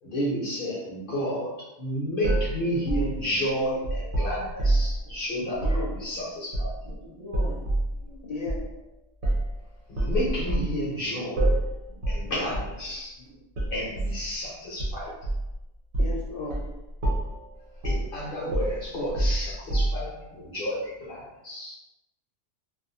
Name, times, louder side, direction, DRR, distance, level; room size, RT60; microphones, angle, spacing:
voice 1, 0.0-6.7 9.9-11.4 12.1-13.2 13.7-15.1 17.8-21.8, equal, 50° left, -6 dB, 0.9 m, -31 dB
sound 1, 2.2-5.0 5.5-5.9 6.5-7.0 7.3-7.9 8.5-8.6 9.2-9.5 10.0-10.8 11.4-11.7 12.0-12.3 12.5-12.8 13.6-14.2 14.8-15.5 15.9-16.2 16.5-16.7 17.0-17.4 17.8-18.1 18.5-20.2, right 1 dB, 65° right, 0.9 m, -26 dB
voice 2, 4.6-5.2 6.8-7.6 11.9-12.3 13.1-13.9, left 1 dB, 40° right, -8 dB, 1.1 m, -45 dB
voice 3, 5.6-5.9 8.0-8.6 16.0-16.6, left 3 dB, 80° left, -6 dB, 0.3 m, -35 dB
2.4 x 2.4 x 2.6 m, 0.98 s
omnidirectional pair, 1.2 m